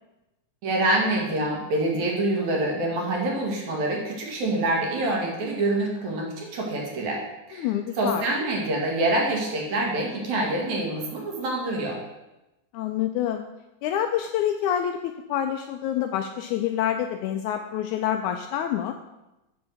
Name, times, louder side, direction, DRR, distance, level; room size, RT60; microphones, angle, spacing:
voice 1, 0.6-7.2 7.5-7.7 8.0-12.0, right 2 dB, 60° right, -1 dB, 3.1 m, -26 dB
voice 2, 7.5-8.3 12.7-13.4 13.8-19.0, left 10 dB, 80° left, 6 dB, 1.8 m, -27 dB
8.0 x 7.2 x 6.3 m, 0.98 s
omnidirectional pair, 3.9 m